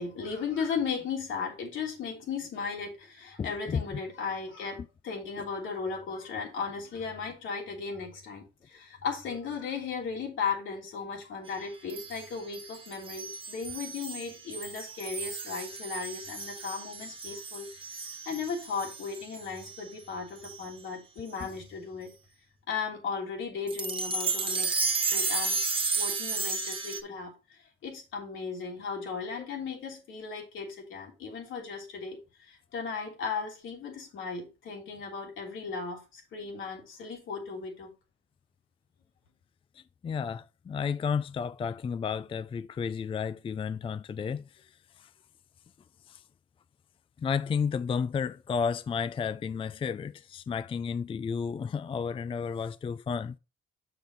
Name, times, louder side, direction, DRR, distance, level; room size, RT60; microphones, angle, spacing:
voice 1, 0.0-22.1 22.7-25.6 26.0-37.9, left 5 dB, 75° left, 3.4 m, -36 dB
voice 2, 3.4-3.8 40.0-44.7 45.0-45.1 46.1-46.2 47.2-53.3, left 6 dB, 25° left, 0.3 m, -32 dB
sound 1, 11.9-19.8 20.4-20.6 21.4-21.5 23.7-27.0, right 4 dB, 25° right, 1.4 m, -33 dB
6.7 x 6.3 x 3.8 m
cardioid pair, 90°, 20 cm